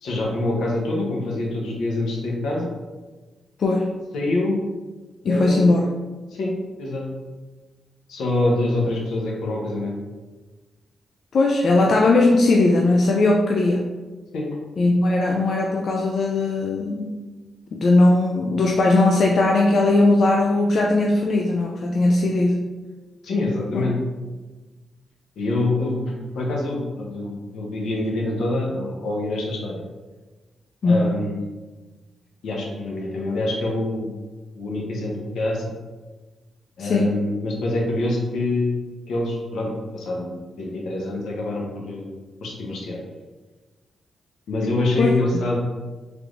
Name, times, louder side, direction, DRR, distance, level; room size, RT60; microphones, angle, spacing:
voice 1, 0.0-2.7 4.1-4.6 5.2-5.7 6.3-6.5 6.8-7.1 8.1-10.0 14.3-14.5 23.2-24.0 25.4-29.7 30.8-31.5 32.4-34.1 34.5-35.6 36.8-38.8 39.1-43.0 44.5-45.6, left 2 dB, 85° left, -1 dB, 0.7 m, -25 dB
voice 2, 3.6-3.9 5.2-5.9 11.3-13.9 14.8-17.1 17.7-22.7 23.7-23.8 30.8-31.1 36.8-37.1 45.0-45.1, left 2 dB, 65° left, -1 dB, 0.3 m, -19 dB
3.2 x 3.1 x 2.5 m, 1.3 s
cardioid pair, 80°, 0 cm